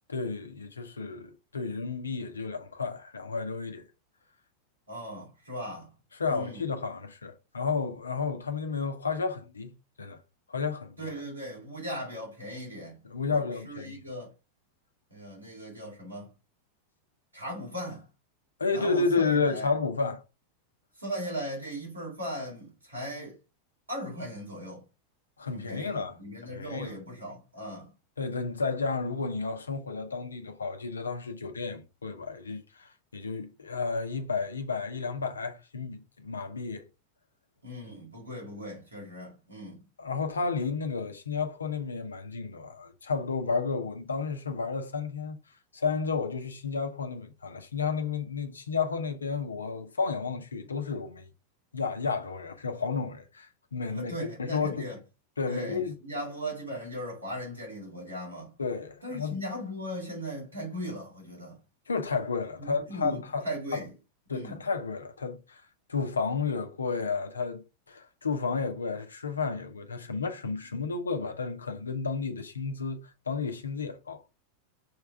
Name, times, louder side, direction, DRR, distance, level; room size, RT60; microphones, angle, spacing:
voice 1, 0.1-3.8 6.2-10.2 10.5-11.1 13.0-14.0 18.6-20.2 25.4-26.2 26.4-26.9 28.2-36.9 40.0-45.4 45.7-51.3 51.7-54.1 54.4-54.9 55.4-55.9 58.6-59.4 61.9-63.4 63.7-63.8 64.3-65.6 65.9-74.2, left 4 dB, 75° left, 1.0 m, -32 dB
voice 2, 4.9-5.9 6.3-6.7 11.0-13.0 13.3-14.3 15.1-16.3 17.3-18.1 18.7-19.7 21.0-23.4 23.9-24.8 25.5-27.9 37.6-39.8 53.9-55.0 55.5-58.5 59.0-61.6 62.6-63.9 64.3-64.6, equal, 80° right, 3.5 m, -38 dB
6.4 x 3.4 x 4.8 m
figure-of-eight pair, 90°, 0 cm